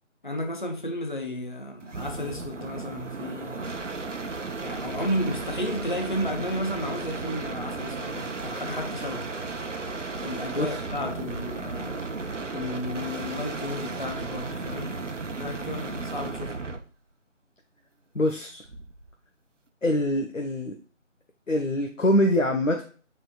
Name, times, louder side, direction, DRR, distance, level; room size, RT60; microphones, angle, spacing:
voice 1, 0.2-3.7 4.6-9.3 10.2-12.1 12.5-16.6, left 1 dB, 40° left, 0.7 m, -33 dB
sound 1, 1.8-16.9 18.6-19.1, right 3 dB, 70° right, 0.9 m, -34 dB
voice 2, 18.1-18.6 19.8-20.8 21.5-22.8, left 1 dB, 80° left, 1.3 m, -24 dB
9.8 x 4.5 x 2.3 m
figure-of-eight pair, 175°, 38 cm